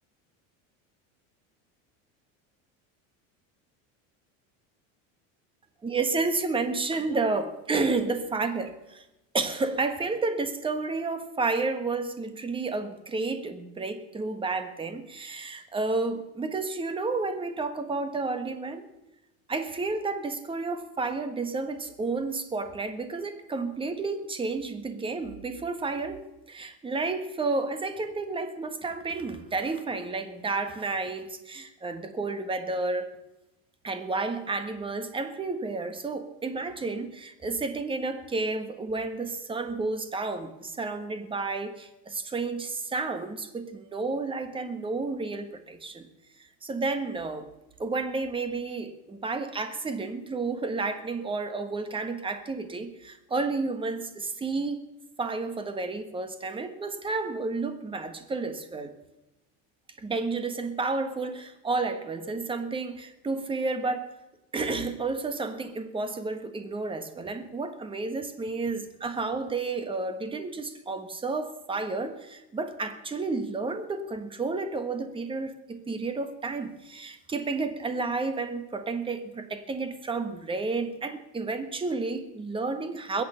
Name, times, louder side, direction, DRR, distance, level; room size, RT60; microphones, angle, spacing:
voice 1, 5.8-9.0 9.3-18.9 19.5-33.1 33.8-46.1 46.6-47.5 47.8-54.8 55.2-58.9 60.0-64.2 64.5-83.2, right 3 dB, 15° right, 9 dB, 1.3 m, -31 dB
21.5 x 8.8 x 5.7 m, 0.95 s
cardioid pair, 145°, 39 cm